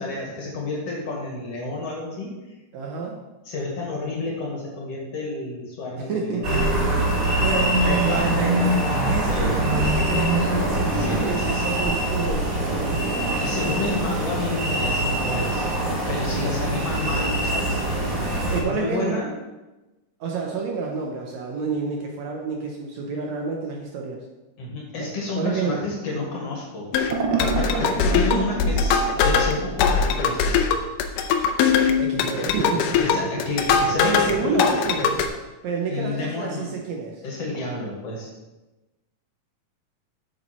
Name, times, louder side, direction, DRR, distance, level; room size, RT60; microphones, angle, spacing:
voice 1, 0.0-2.4 3.5-6.7 7.1-8.4 9.3-9.7 10.9-11.7 13.4-15.6 16.1-18.1 18.6-19.3 24.6-27.1 27.4-30.7 32.9-34.8 35.9-36.7 37.2-38.3, left 2 dB, 55° left, -2 dB, 2.5 m, -30 dB
voice 2, 2.7-3.2 6.1-6.5 7.3-13.4 16.3-16.8 18.5-19.2 20.2-24.2 25.0-25.1 25.4-25.8 32.0-33.0 34.0-35.1 35.6-37.2, right 4 dB, 70° right, 0 dB, 1.9 m, -29 dB
sound 1, 6.4-18.6, right 1 dB, 35° right, 1.6 m, -23 dB
sound 2, 26.9-34.3 34.6-35.3, left 6 dB, 85° left, 2.3 m, -21 dB
sound 3, 27.1-29.8 32.1-35.2, right 5 dB, 90° right, 1.1 m, -31 dB
8.4 x 7.3 x 4.3 m, 1.1 s
omnidirectional pair, 3.8 m